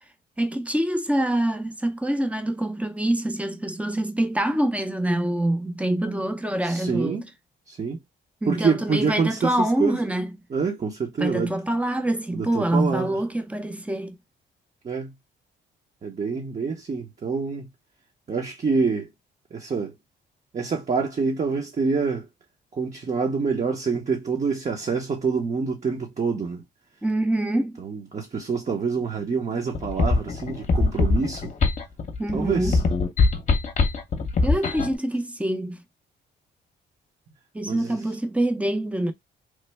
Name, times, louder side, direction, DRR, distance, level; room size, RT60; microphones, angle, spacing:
voice 1, 0.4-7.2 8.4-10.3 11.2-14.2 27.0-27.8 32.2-32.8 34.4-35.8 37.5-39.1, right 1 dB, 5° right, 0.6 m, -25 dB
voice 2, 6.7-7.2 7.7-8.0 8.5-9.5 9.8-10.0 10.5-11.5 12.3-13.2 14.8-15.1 16.0-17.7 18.3-19.1 19.5-19.9 20.5-22.2 22.8-26.6 27.8-31.5 32.3-32.8 37.7-38.0, right 5 dB, 35° right, 0.8 m, -26 dB
sound 1, 29.7-35.0, left 3 dB, 35° left, 0.8 m, -22 dB
3.2 x 2.1 x 3.2 m
cardioid pair, 90°, 20 cm